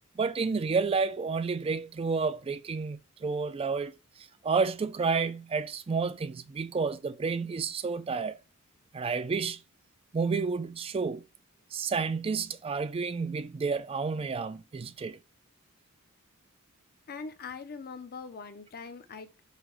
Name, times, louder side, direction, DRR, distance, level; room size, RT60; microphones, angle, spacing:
voice 1, 0.2-3.9 4.4-8.4 8.9-9.6 10.1-11.2 11.7-15.2, right 4 dB, 25° right, 0.3 m, -30 dB
voice 2, 17.1-19.4, left 5 dB, 45° left, 0.6 m, -42 dB
5.6 x 2.2 x 3.0 m
head